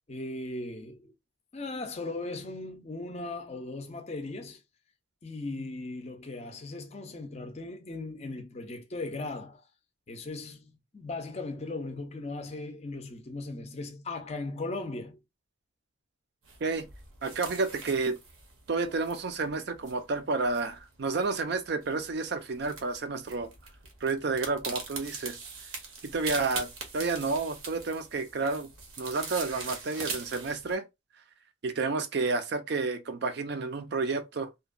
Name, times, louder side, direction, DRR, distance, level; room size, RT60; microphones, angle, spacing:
voice 1, 0.1-1.1 1.5-4.6 5.2-9.6 10.1-15.2, left 2 dB, 30° left, 0.4 m, -38 dB
sound 1, 16.4-30.7, right 4 dB, 80° right, 0.8 m, -42 dB
voice 2, 17.2-18.2 18.7-23.5 24.0-25.4 26.1-28.7 29.0-30.9 31.6-34.5, right 3 dB, 50° right, 0.4 m, -30 dB
2.7 x 2.2 x 2.4 m
head